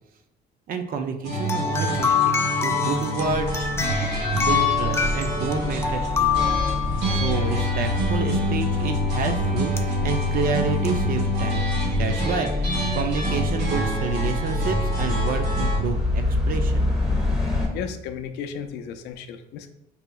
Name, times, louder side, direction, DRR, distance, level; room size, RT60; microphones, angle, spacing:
voice 1, 0.7-3.7 4.2-6.6 7.1-16.8, right 5 dB, 55° right, 6 dB, 0.5 m, -29 dB
sound 1, 1.2-15.8, equal, 75° right, 1.2 m, -27 dB
sound 2, 1.4-7.4 9.8-9.9 10.8-10.9, left 7 dB, 15° left, 0.3 m, -25 dB
sound 3, 3.2-17.7, left 2 dB, 5° right, 1.0 m, -28 dB
voice 2, 17.4-19.7, left 7 dB, 80° left, 7 dB, 0.4 m, -35 dB
5.5 x 2.8 x 2.3 m, 0.87 s
cardioid pair, 110°, 17 cm